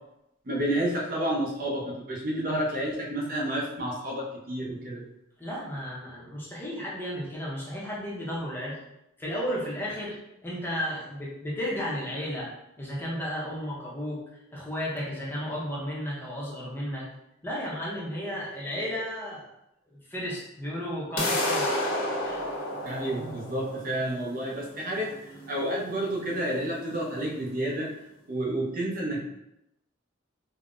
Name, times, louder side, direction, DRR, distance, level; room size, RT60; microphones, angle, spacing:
voice 1, 0.5-5.0 22.8-27.9 28.3-29.2, right 1 dB, 45° right, -2 dB, 0.5 m, -30 dB
voice 2, 5.4-8.8 9.2-10.2 10.4-12.5 12.8-14.2 14.5-17.0 17.4-19.5 19.9-21.7 22.2-22.4, equal, 10° left, -6 dB, 0.6 m, -33 dB
sound 1, 21.2-27.1, left 1 dB, 75° left, 0.8 m, -31 dB
3.7 x 2.0 x 2.4 m, 0.85 s
head